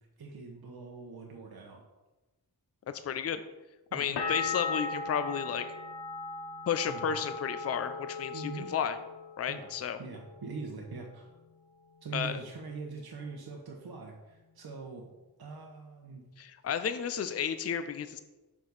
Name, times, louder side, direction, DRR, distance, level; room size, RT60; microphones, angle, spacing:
voice 1, 0.2-1.8 3.9-4.2 6.9-7.1 8.3-8.7 9.5-9.7 10.0-11.3 12.0-15.1 15.4-16.3, right 4 dB, 75° right, 0 dB, 0.8 m, -43 dB
voice 2, 2.9-3.4 3.9-5.7 6.7-9.0 9.4-10.0 12.1-12.4 16.4-18.2, left 8 dB, 40° left, 11 dB, 0.4 m, -32 dB
sound 1, 4.2-9.8 10.1-10.8, left 4 dB, 85° left, 0.7 m, -37 dB
5.9 x 4.7 x 4.0 m, 1.1 s
wide cardioid pair, 70°, 38 cm